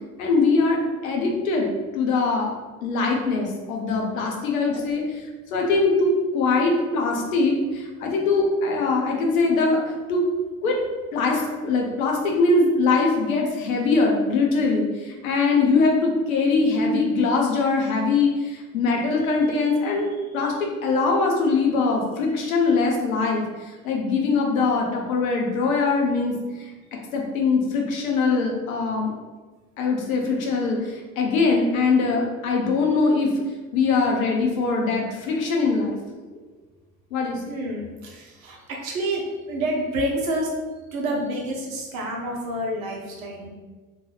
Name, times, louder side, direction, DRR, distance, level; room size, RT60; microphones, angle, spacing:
voice 1, 0.2-1.7 1.9-2.5 2.8-5.2 5.5-9.8 10.1-10.2 10.6-10.8 11.1-20.1 20.3-26.4 27.1-29.1 29.8-33.3 33.7-36.0 37.1-37.4, left 3 dB, 75° left, 0 dB, 0.7 m, -22 dB
voice 2, 37.5-40.5 40.9-43.5, right 1 dB, 75° right, -1 dB, 0.8 m, -28 dB
2.8 x 2.2 x 3.2 m, 1.3 s
figure-of-eight pair, 60°, 41 cm